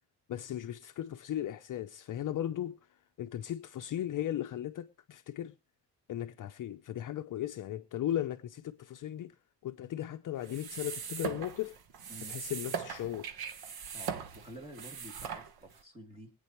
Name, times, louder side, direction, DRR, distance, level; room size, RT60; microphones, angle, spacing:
voice 1, 0.3-2.8 3.2-5.5 6.1-9.3 9.6-11.8 12.3-13.3, left 11 dB, 50° left, 0.6 m, -37 dB
sound 1, 10.4-15.8, right 7 dB, 60° right, 1.2 m, -40 dB
voice 2, 13.9-16.3, equal, 15° right, 2.6 m, -49 dB
23.5 x 9.0 x 3.0 m
cardioid pair, 170°, 42 cm